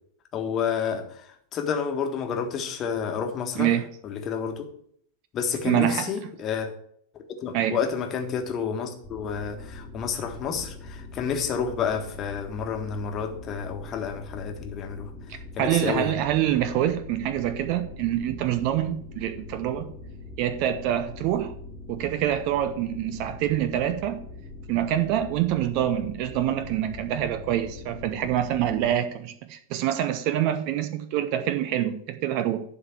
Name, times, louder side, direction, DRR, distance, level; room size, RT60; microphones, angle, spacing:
voice 1, 0.3-1.1 1.5-3.7 4.0-4.6 5.3-6.7 7.4-15.1 15.6-16.1, left 6 dB, 30° left, 1.5 m, -30 dB
voice 2, 5.6-6.1 7.5-7.8 15.6-19.9 20.4-21.5 21.9-24.2 24.7-32.6, right 11 dB, 45° right, 0.7 m, -26 dB
sound 1, 9.0-28.9, left 2 dB, ahead, 2.1 m, -42 dB
11.5 x 3.9 x 7.3 m
figure-of-eight pair, 90°, 0 cm